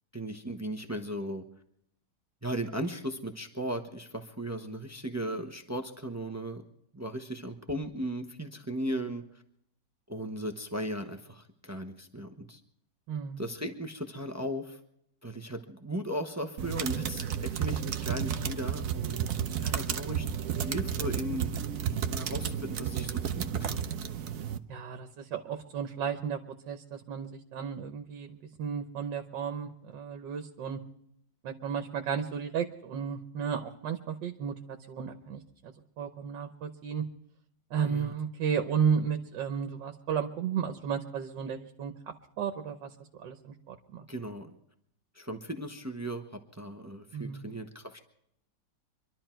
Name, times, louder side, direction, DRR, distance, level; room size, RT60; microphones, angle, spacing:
voice 1, 0.1-1.4 2.4-6.6 6.9-9.2 10.1-12.6 13.4-14.8 15.2-20.3 20.6-21.6 22.1-23.8 37.9-38.1 44.1-44.6 45.1-48.0, right 1 dB, 15° right, 6 dB, 0.7 m, -37 dB
voice 2, 13.1-13.4 24.7-30.8 31.4-37.0 37.7-41.9 42.4-44.1 47.1-47.4, right 7 dB, 80° right, 6 dB, 1.7 m, -33 dB
sound 1, 16.6-24.6, right 8 dB, 60° right, 1.1 m, -32 dB
25.0 x 12.0 x 4.5 m, 0.74 s
omnidirectional pair, 1.9 m